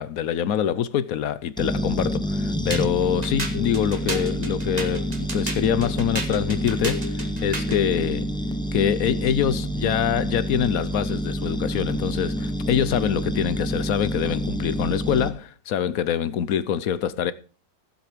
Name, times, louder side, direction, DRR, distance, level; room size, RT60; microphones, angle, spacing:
voice 1, 0.0-8.3 8.7-17.3, left 9 dB, 65° left, 1.0 m, -25 dB
sound 1, 1.6-15.3, equal, 5° left, 0.4 m, -28 dB
sound 2, 2.7-7.9, equal, 25° right, 1.7 m, -32 dB
15.5 x 7.7 x 4.9 m
omnidirectional pair, 2.0 m